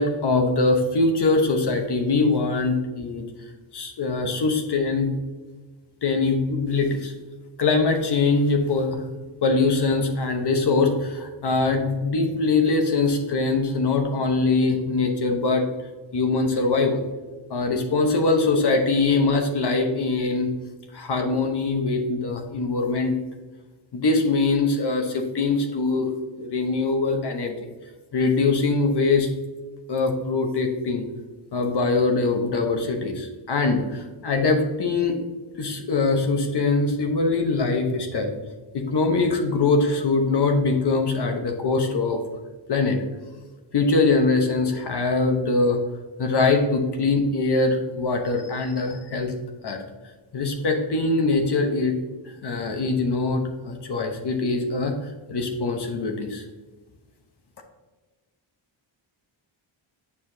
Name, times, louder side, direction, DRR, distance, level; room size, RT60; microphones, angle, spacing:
voice 1, 0.0-3.3 3.7-5.1 6.0-7.1 7.6-9.0 9.4-15.6 16.1-17.0 17.5-20.5 20.9-23.1 23.9-26.1 26.4-27.5 28.1-29.3 29.9-31.1 31.5-35.2 35.6-38.3 38.7-42.2 42.7-43.0 43.7-45.8 46.2-49.3 49.6-49.8 50.3-51.9 52.2-54.9 55.3-56.4, left 3 dB, 55° left, 4 dB, 1.0 m, -22 dB
8.2 x 4.8 x 2.7 m, 1.2 s
wide cardioid pair, 105°, 48 cm